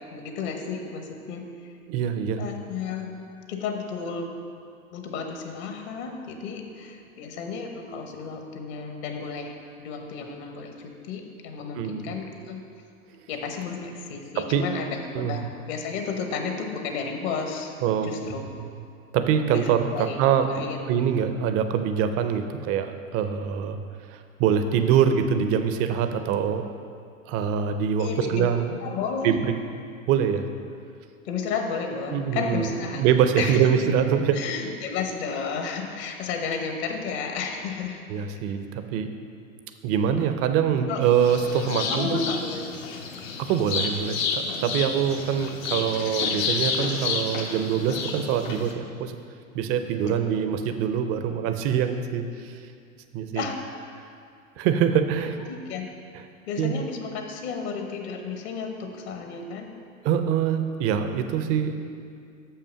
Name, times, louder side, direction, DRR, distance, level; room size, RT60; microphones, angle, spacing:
voice 1, 0.1-1.5 2.4-3.1 3.5-4.3 4.9-12.7 13.3-14.9 15.2-17.7 18.0-18.4 19.5-21.0 28.0-28.5 28.8-29.4 31.2-33.0 33.4-33.9 34.3-38.0 40.9-41.1 41.7-42.7 50.1-50.2 53.3-53.6 55.5-55.9 56.5-59.7, left 5 dB, 50° left, 4 dB, 1.1 m, -32 dB
voice 2, 1.9-2.4 11.8-12.1 14.4-14.7 15.1-15.4 17.8-18.7 19.1-20.5 20.9-23.8 24.1-26.7 27.3-28.7 29.2-29.5 30.1-30.5 32.1-32.7 32.9-34.4 38.1-39.1 39.8-42.2 43.4-49.1 49.5-52.5 53.1-53.4 54.6-55.3 56.6-56.8 60.0-61.9, right 8 dB, 35° right, 8 dB, 0.6 m, -24 dB
sound 1, 41.0-48.7, left 5 dB, 70° left, 1.1 m, -30 dB
6.7 x 5.7 x 5.6 m, 2.3 s
hypercardioid pair, 100°, 41 cm